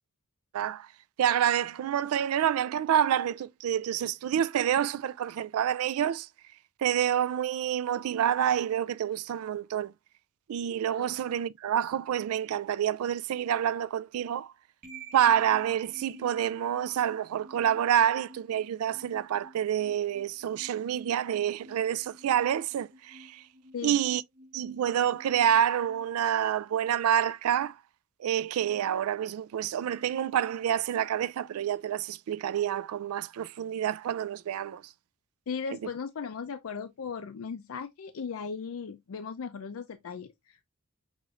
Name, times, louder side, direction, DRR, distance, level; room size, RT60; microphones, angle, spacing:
voice 1, 0.5-0.9 1.2-6.3 6.8-9.9 10.5-14.5 15.1-23.4 23.8-24.2 24.5-27.8 28.2-34.8 35.7-35.8, right 10 dB, 90° right, 0.3 m, -28 dB
sound 1, 14.8-26.9, right 2 dB, 40° right, 1.0 m, -52 dB
voice 2, 35.5-40.6, left 6 dB, 75° left, 0.4 m, -37 dB
6.1 x 3.0 x 2.4 m
head